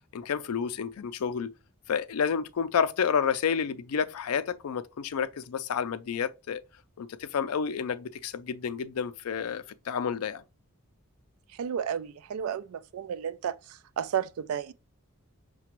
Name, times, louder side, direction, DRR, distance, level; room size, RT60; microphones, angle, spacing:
voice 1, 0.1-1.5 1.9-6.6 7.0-10.4, left 7 dB, 85° left, 0.4 m, -30 dB
voice 2, 11.6-14.7, right 8 dB, 75° right, 0.3 m, -32 dB
5.8 x 2.2 x 2.9 m
head